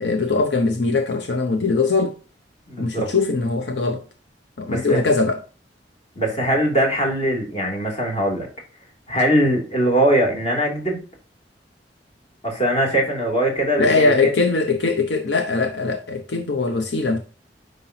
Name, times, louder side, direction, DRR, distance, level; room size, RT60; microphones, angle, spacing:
voice 1, 0.0-2.1 2.8-4.0 4.6-5.4 13.8-17.2, left 3 dB, 80° left, 0.9 m, -21 dB
voice 2, 2.7-3.1 4.7-5.0 6.2-8.5 9.1-11.0 12.4-14.1, right 1 dB, 35° left, 2.8 m, -21 dB
9.7 x 5.3 x 2.8 m
head